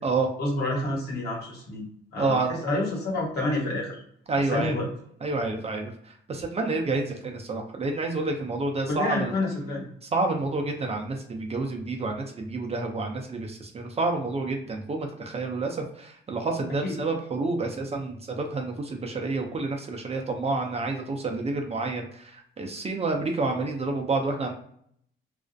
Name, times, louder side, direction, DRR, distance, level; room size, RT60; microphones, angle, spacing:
voice 1, 0.4-1.8 2.1-4.0 4.4-4.9 8.9-9.9 16.7-17.0, left 2 dB, 55° left, -3 dB, 1.2 m, -29 dB
voice 2, 2.2-2.5 4.3-4.7 5.2-9.3 10.1-24.5, right 3 dB, 30° right, 2 dB, 0.4 m, -29 dB
2.4 x 2.0 x 2.5 m, 0.67 s
cardioid pair, 90°, 20 cm